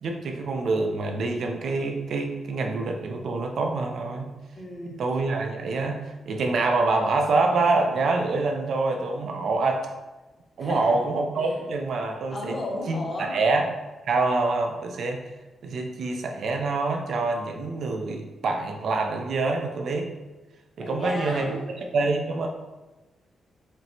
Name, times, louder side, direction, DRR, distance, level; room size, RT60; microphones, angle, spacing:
voice 1, 0.0-4.3 4.9-9.9 10.6-12.6 12.9-13.7 14.1-15.2 15.6-20.1 20.8-21.5 21.8-22.5, right 3 dB, 70° right, 3 dB, 0.4 m, -26 dB
voice 2, 4.5-5.0 10.6-11.0 11.4-11.6 12.3-13.4 20.8-21.7, left 2 dB, 35° left, -1 dB, 0.8 m, -34 dB
4.3 x 2.0 x 2.6 m, 1.1 s
cardioid pair, 115°, 0 cm